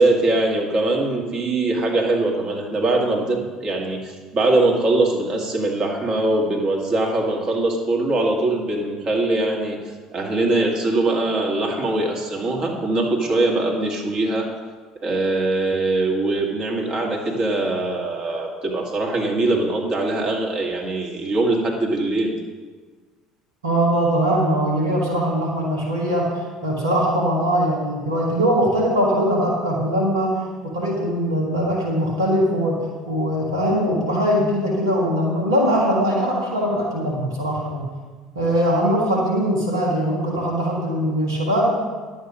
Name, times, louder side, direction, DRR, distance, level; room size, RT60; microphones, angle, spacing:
voice 1, 0.0-9.8 10.1-14.5 15.0-22.4, right 2 dB, 40° right, 0 dB, 2.1 m, -22 dB
voice 2, 23.6-37.8 38.4-41.7, equal, 90° right, -3 dB, 1.8 m, -21 dB
11.0 x 8.0 x 5.1 m, 1.4 s
hypercardioid pair, 65°, 2 cm